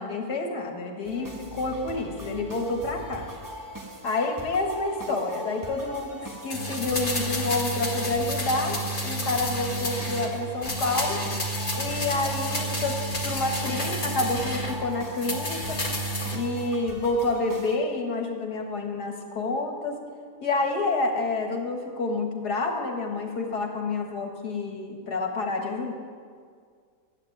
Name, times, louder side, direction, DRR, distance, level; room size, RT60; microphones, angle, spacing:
voice 1, 0.0-3.3 4.0-11.2 11.7-13.0 13.2-15.9 16.3-20.0 20.4-25.9, left 3 dB, 80° left, 3 dB, 2.0 m, -28 dB
sound 1, 1.0-17.8, right 1 dB, 15° right, 1.3 m, -41 dB
sound 2, 6.5-10.3 10.6-14.8 15.2-16.4 16.7-16.8, equal, 30° left, 1.9 m, -30 dB
13.0 x 9.8 x 8.9 m, 2.1 s
omnidirectional pair, 1.7 m